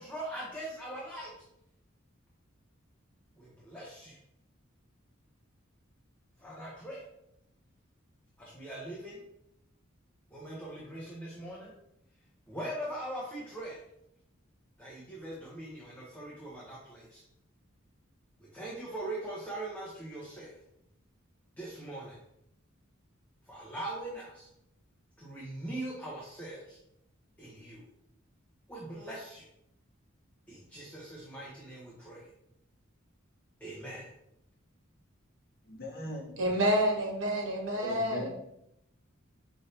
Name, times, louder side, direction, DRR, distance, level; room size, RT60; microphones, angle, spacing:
voice 1, 0.0-1.4 3.4-4.2 6.4-7.0 8.4-9.2 10.3-11.7 12.5-13.8 14.8-17.2 18.4-20.6 21.6-22.2 23.5-24.5 25.2-26.8 27.4-27.9 28.7-29.4 30.5-32.3 33.6-34.1, right 1 dB, 10° left, -6 dB, 0.8 m, -41 dB
voice 2, 35.6-36.3 37.8-38.3, equal, 50° left, -1 dB, 1.0 m, -39 dB
voice 3, 36.4-38.3, equal, 80° right, 0 dB, 1.3 m, -28 dB
5.3 x 2.8 x 3.3 m, 0.80 s
head